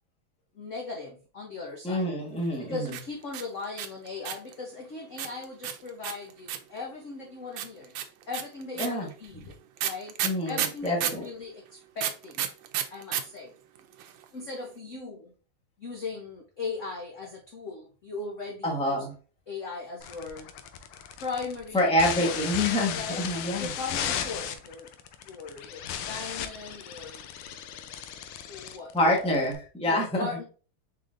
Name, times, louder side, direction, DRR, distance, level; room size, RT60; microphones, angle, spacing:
voice 1, 0.6-2.1 2.6-7.9 8.3-9.5 9.8-10.2 10.5-12.5 12.9-13.5 14.3-15.3 15.8-19.0 19.5-20.5 21.2-21.9 22.2-22.4 22.9-23.2 23.6-24.9 25.2-27.3 28.5-29.3 29.8-30.4, left 4 dB, 65° left, 0 dB, 0.7 m, -38 dB
voice 2, 1.8-2.9 8.8-9.1 10.2-11.2 18.6-19.1 21.7-23.7 28.9-30.3, left 1 dB, 5° left, -1 dB, 0.7 m, -27 dB
sound 1, 2.9-4.5 5.2-6.8 7.6-11.3 12.0-13.2 13.5-13.6 13.8-14.2, right 10 dB, 75° right, 1.3 m, -31 dB
sound 2, 20.0-29.6, left 9 dB, 90° left, 1.4 m, -36 dB
4.8 x 3.9 x 2.5 m, 0.37 s
omnidirectional pair, 2.2 m